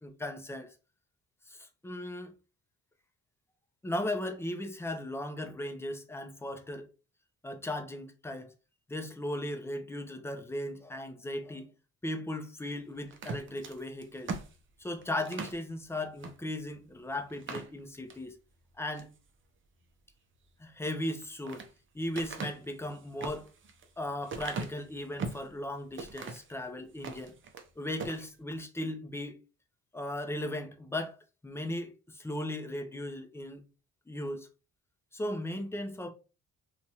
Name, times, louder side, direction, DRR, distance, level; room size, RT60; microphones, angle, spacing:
voice 1, 0.0-0.7 1.5-2.3 3.8-6.9 7.4-8.5 8.9-11.7 12.0-14.4 14.8-18.3 18.8-19.1 20.6-21.6 21.9-23.5 24.0-27.3 27.8-29.4 29.9-31.2 31.4-33.6 34.1-34.5 35.1-36.1, left 1 dB, 10° left, 0.5 m, -37 dB
sound 1, 13.1-15.6 16.2-16.4 16.7-16.8 17.3-18.2 18.7-19.2 21.0-21.7 22.1-25.5 26.0-26.5 26.9-27.7 27.9-28.2, right 4 dB, 40° right, 0.6 m, -40 dB
2.8 x 2.3 x 2.8 m
cardioid pair, 90°, 30 cm